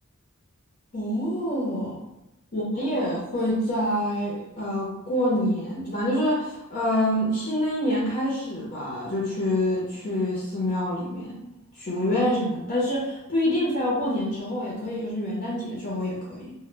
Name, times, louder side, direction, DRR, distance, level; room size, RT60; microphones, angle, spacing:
voice 1, 0.9-2.0 2.5-11.5 11.8-16.5, left 1 dB, 40° left, -5 dB, 0.6 m, -26 dB
2.0 x 2.0 x 3.2 m, 0.93 s
head